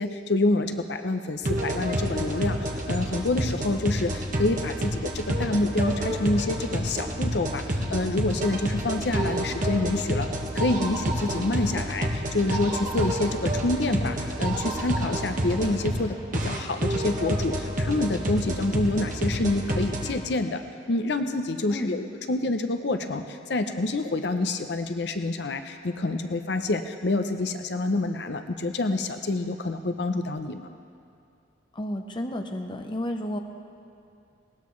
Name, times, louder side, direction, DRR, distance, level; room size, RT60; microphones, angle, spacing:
voice 1, 0.0-10.3 10.5-20.6 20.9-30.7, left 2 dB, 60° left, 7 dB, 0.6 m, -27 dB
sound 1, 1.4-20.2, right 1 dB, 45° right, 1.4 m, -29 dB
voice 2, 21.7-22.1 31.7-33.4, left 1 dB, 25° left, 4 dB, 0.7 m, -31 dB
19.5 x 18.0 x 3.2 m, 2.5 s
head